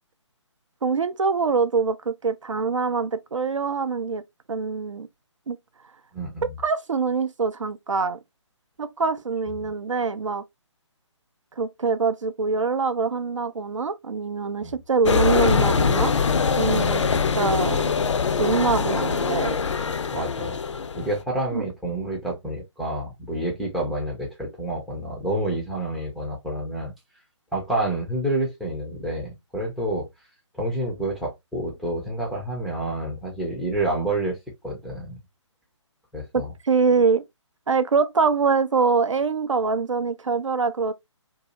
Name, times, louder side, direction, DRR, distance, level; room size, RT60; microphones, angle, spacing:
voice 1, 0.8-4.2 4.5-5.1 5.5-5.6 6.6-8.2 8.8-10.4 11.6-16.1 16.6-17.1 17.3-17.9 18.4-19.6 21.5-21.6 36.3-37.2 37.7-40.9, right 4 dB, 80° right, 0.4 m, -24 dB
voice 2, 6.1-6.5 9.6-9.7 14.6-14.8 16.7-16.9 20.1-20.6 21.0-26.9 27.5-30.1 30.5-34.4 34.6-35.2 36.1-36.5, right 1 dB, ahead, 0.4 m, -28 dB
sound 1, 15.0-21.2, left 5 dB, 70° left, 0.4 m, -23 dB
2.6 x 2.3 x 2.7 m
figure-of-eight pair, 140°, 16 cm